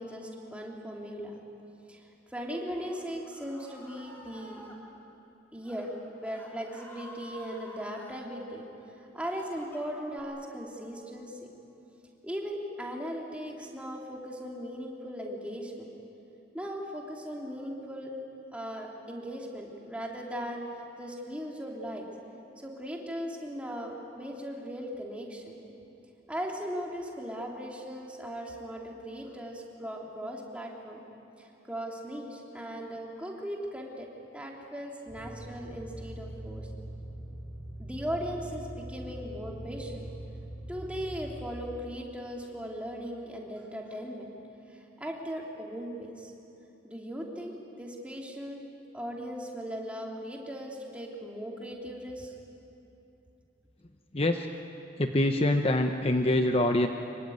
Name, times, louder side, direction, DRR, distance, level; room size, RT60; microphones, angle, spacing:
voice 1, 0.0-1.3 1.9-4.6 5.5-5.9 6.2-8.6 9.1-11.4 12.2-15.9 16.5-18.1 18.5-20.6 21.0-22.0 22.6-25.6 26.3-31.0 31.4-34.1 34.3-36.7 37.8-40.1 40.7-44.3 44.7-46.3 46.8-48.7 48.9-52.3, equal, 5° right, -1 dB, 3.0 m, -38 dB
Screaming, 2.4-4.8 5.5-5.9 6.2-8.3 8.8-10.2, equal, 10° left, 4.0 m, -50 dB
sound 1, 35.1-41.4, right 1 dB, 30° right, 6.0 m, -42 dB
voice 2, 54.1-54.5 55.0-56.9, left 1 dB, 30° left, 5 dB, 0.8 m, -25 dB
25.5 x 23.0 x 9.5 m, 2.9 s
head